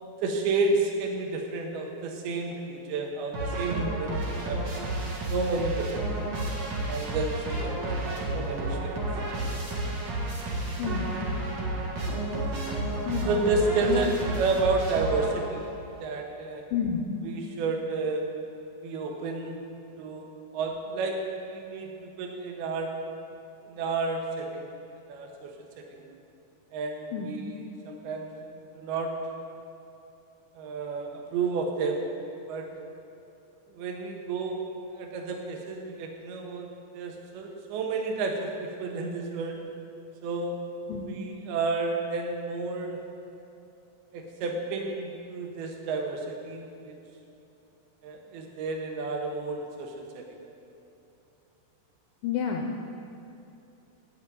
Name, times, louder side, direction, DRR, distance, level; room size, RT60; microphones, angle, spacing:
voice 1, 0.0-4.6 5.3-6.2 6.8-9.0 9.3-9.5 12.2-12.4 13.3-15.7 16.0-16.6 17.2-18.2 18.8-19.6 20.0-20.3 20.5-22.9 23.7-24.7 25.1-25.5 25.8-26.1 26.7-29.1 30.6-32.0 32.5-32.7 33.7-34.6 34.9-39.6 40.2-40.6 41.1-43.0 44.1-46.9 48.0-50.2, right 3 dB, 70° right, 2 dB, 2.9 m, -31 dB
sound 1, 3.3-15.7, right 1 dB, 50° right, 2.5 m, -31 dB
voice 2, 10.8-11.2 13.1-13.4 13.8-14.1 16.7-17.0 27.1-27.3 40.9-41.1 52.2-52.8, left 7 dB, 85° left, 2 dB, 2.1 m, -30 dB
9.6 x 7.8 x 9.0 m, 2.8 s
omnidirectional pair, 5.0 m